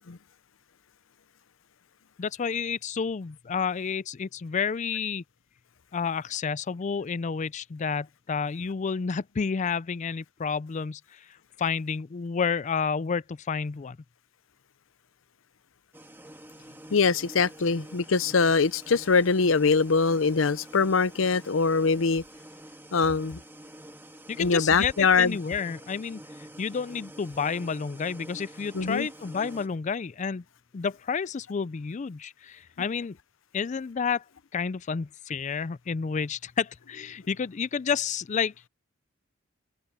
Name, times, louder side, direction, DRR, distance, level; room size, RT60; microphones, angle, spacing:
voice 1, 2.2-5.2 5.9-11.3 11.6-14.0 24.3-26.2 26.6-30.4 30.7-33.2 33.5-34.2 34.5-38.7, left 6 dB, 35° left, 0.4 m, -30 dB
sound 1, 15.9-29.7, right 1 dB, 10° right, 2.1 m, -47 dB
voice 2, 16.9-22.2 22.9-23.4 24.4-25.4 28.7-29.1, left 4 dB, 75° left, 0.7 m, -23 dB
head